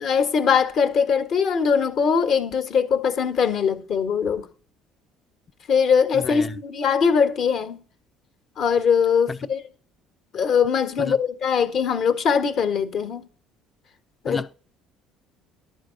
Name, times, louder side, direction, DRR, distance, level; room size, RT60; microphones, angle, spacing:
voice 1, 0.0-4.5 5.7-7.8 8.6-9.6 10.3-13.3 14.2-14.4, left 6 dB, 60° left, 1.5 m, -21 dB
voice 2, 6.1-6.5 9.3-9.4 11.0-11.1 14.3-14.5, left 4 dB, 25° left, 0.5 m, -31 dB
12.0 x 4.8 x 7.8 m
supercardioid pair, 80°, 0 cm